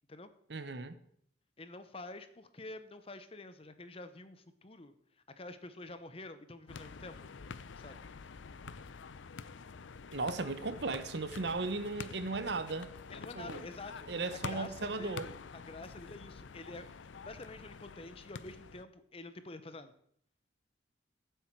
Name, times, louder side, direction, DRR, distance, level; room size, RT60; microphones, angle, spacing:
voice 1, 0.5-1.0 10.1-12.9 13.3-13.6 14.1-15.3, right 3 dB, 60° right, 0.9 m, -36 dB
voice 2, 1.6-4.9 5.4-7.2 7.8-8.0 13.1-16.9 17.2-19.9, left 2 dB, 30° left, 0.8 m, -48 dB
sound 1, 6.7-18.8, left 5 dB, 80° left, 0.5 m, -47 dB
15.0 x 8.2 x 4.6 m
head